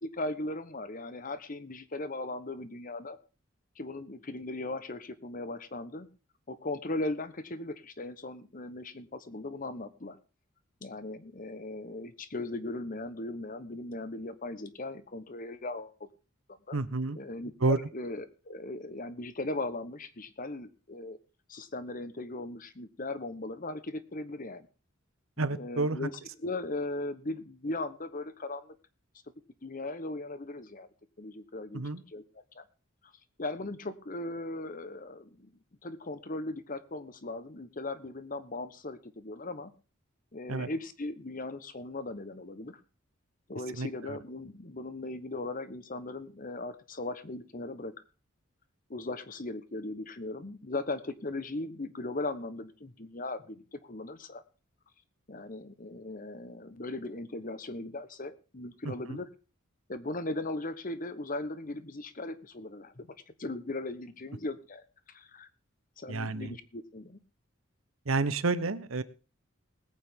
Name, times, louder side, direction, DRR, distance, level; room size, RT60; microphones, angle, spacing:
voice 1, 0.0-3.2 3.8-6.1 6.5-10.2 10.8-16.1 16.7-16.8 17.1-21.2 21.5-24.7 25.4-28.7 29.6-30.9 31.2-32.2 32.5-32.6 33.4-35.5 35.8-39.7 40.3-42.8 43.5-47.9 48.9-54.4 55.3-59.3 59.9-63.1 63.4-65.5 66.0-67.2, left 2 dB, 40° left, 13 dB, 1.1 m, -38 dB
voice 2, 16.7-17.2 17.6-17.8 25.4-26.1 31.7-32.0 40.5-40.7 43.8-44.2 58.8-59.2 66.1-66.5 68.1-69.0, right 3 dB, 80° right, 13 dB, 1.0 m, -30 dB
20.0 x 8.8 x 3.8 m, 0.34 s
head